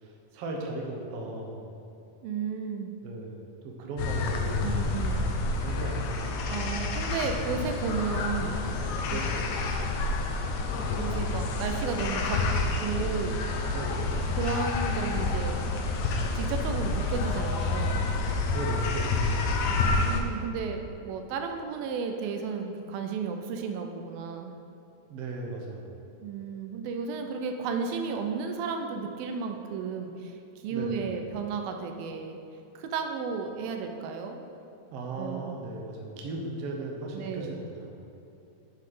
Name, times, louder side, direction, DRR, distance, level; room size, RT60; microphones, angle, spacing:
voice 1, 0.0-1.6 3.0-4.7 5.6-6.6 9.1-9.4 13.7-14.1 18.5-19.5 25.1-26.0 30.7-31.0 34.9-38.0, right 2 dB, 65° right, 0 dB, 1.7 m, -37 dB
voice 2, 2.2-2.9 4.6-5.2 6.5-8.6 9.1-9.2 11.0-12.4 12.8-13.4 14.4-15.6 16.3-18.1 20.0-24.5 26.2-30.4 30.6-32.4 32.8-34.4 35.2-35.6 37.1-37.6, right 5 dB, 85° right, 5 dB, 2.5 m, -33 dB
sound 1, 4.0-20.2, left 3 dB, 80° left, 1.6 m, -29 dB
9.6 x 5.7 x 4.9 m, 2.8 s
omnidirectional pair, 4.1 m